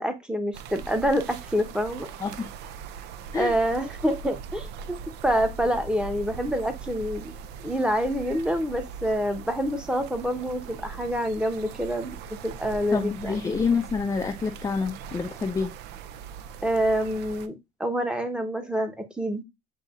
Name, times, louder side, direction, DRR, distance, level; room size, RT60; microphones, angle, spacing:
voice 1, 0.0-2.1 3.3-5.0 5.2-7.3 7.6-12.1 12.4-13.4 16.6-17.5 17.8-19.4, equal, 5° right, 0.8 m, -27 dB
sound 1, 0.5-17.5, right 6 dB, 85° right, 0.4 m, -41 dB
voice 2, 12.9-15.7, left 5 dB, 20° left, 0.4 m, -27 dB
7.7 x 2.7 x 2.4 m
cardioid pair, 110°, 17 cm